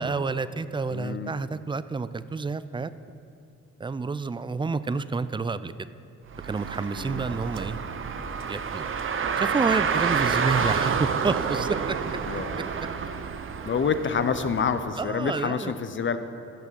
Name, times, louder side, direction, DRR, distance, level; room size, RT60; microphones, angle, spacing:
voice 1, 0.0-2.9 3.8-5.9 6.4-7.8 8.5-8.9 9.4-11.9 15.0-15.7, right 4 dB, 15° right, 15 dB, 0.3 m, -29 dB
voice 2, 0.9-1.3 7.0-7.4 12.3-12.6 13.7-16.2, left 6 dB, 40° left, 10 dB, 0.6 m, -28 dB
Car, 6.3-14.9, right 6 dB, 40° right, 0.7 m, -29 dB
14.0 x 6.0 x 7.5 m, 2.6 s
cardioid pair, 95°, 31 cm